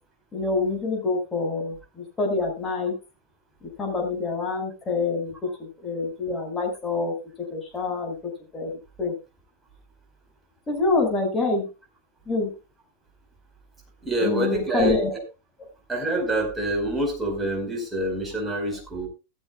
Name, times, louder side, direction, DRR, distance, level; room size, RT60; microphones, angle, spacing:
voice 1, 0.3-2.9 3.8-5.3 5.8-7.1 7.5-8.1 8.5-9.1 10.7-11.7 12.3-12.5 14.2-15.1, left 3 dB, 15° left, 1 dB, 5.7 m, -26 dB
voice 2, 14.0-15.2 15.9-19.1, right 1 dB, 10° right, 0 dB, 4.8 m, -26 dB
15.5 x 12.5 x 2.4 m, 0.29 s
figure-of-eight pair, 90°, 0 cm